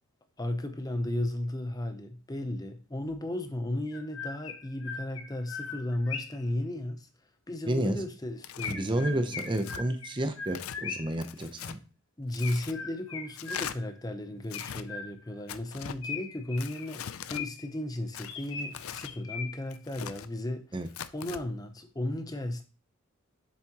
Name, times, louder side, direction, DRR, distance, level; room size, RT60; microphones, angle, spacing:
voice 1, 0.4-7.1 7.5-9.4 12.2-22.6, left 1 dB, 20° left, 0.7 m, -35 dB
Chirp tweet, 3.9-6.5 8.6-11.3 12.4-14.0 14.5-15.4 16.0-17.8 18.2-19.8, left 5 dB, 70° left, 1.1 m, -40 dB
voice 2, 7.7-8.0 8.7-11.8 20.7-20.9, right 1 dB, 25° right, 0.7 m, -30 dB
Tearing, 8.4-8.8 9.4-9.8 10.5-10.8 11.2-11.8 12.3-12.8 13.3-13.8 14.4-14.8 15.5-16.0 16.6-17.4 18.1-19.1 19.7-20.3 20.9-21.4, left 9 dB, 85° left, 0.5 m, -41 dB
7.5 x 7.2 x 2.9 m
head